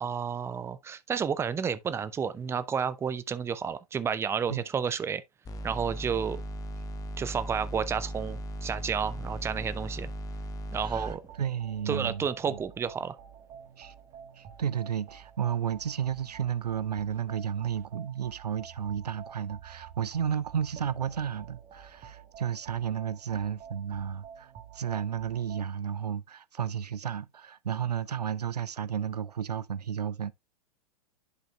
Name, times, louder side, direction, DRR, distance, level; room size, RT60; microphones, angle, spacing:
voice 1, 0.0-5.2 5.6-6.4 7.2-10.1 10.7-11.2 11.9-13.2, right 7 dB, 15° right, 0.5 m, -31 dB
sound 1, 5.4-11.2, equal, 20° left, 1.2 m, -37 dB
voice 2, 10.8-12.6 13.8-13.9 14.4-30.3, right 8 dB, 85° right, 0.5 m, -33 dB
sound 2, 11.1-25.6, right 8 dB, 30° right, 1.3 m, -49 dB
11.0 x 5.1 x 2.3 m
figure-of-eight pair, 100°, 20 cm